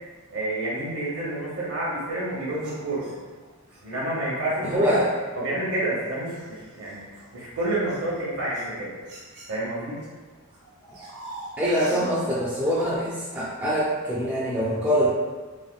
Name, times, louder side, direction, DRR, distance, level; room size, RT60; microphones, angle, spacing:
voice 1, 0.3-3.1 3.8-4.9 5.4-7.0 7.3-8.9 9.5-10.0, right 1 dB, 65° right, -6 dB, 0.8 m, -29 dB
sound 1, 2.6-3.8 4.6-4.8 5.4-10.1 10.3-13.0, right 2 dB, 90° right, 1.0 m, -44 dB
voice 2, 4.6-5.1 11.6-15.1, equal, 5° right, -9 dB, 0.4 m, -24 dB
3.3 x 2.2 x 2.3 m, 1.4 s
head